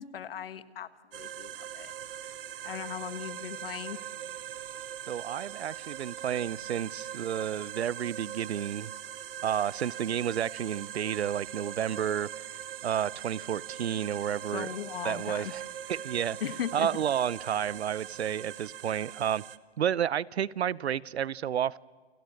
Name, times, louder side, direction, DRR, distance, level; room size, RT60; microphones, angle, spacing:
voice 1, 0.0-1.9 2.6-4.0 14.5-15.5 16.4-16.9, left 9 dB, 60° left, 1.5 m, -38 dB
sound 1, 1.1-19.6, right 10 dB, 60° right, 1.2 m, -41 dB
voice 2, 5.1-8.9 9.4-12.3 12.8-14.7 15.0-15.6 15.9-16.4 16.7-19.4 19.8-21.8, right 9 dB, 85° right, 0.7 m, -31 dB
29.5 x 28.0 x 6.6 m
hypercardioid pair, 145°, 32 cm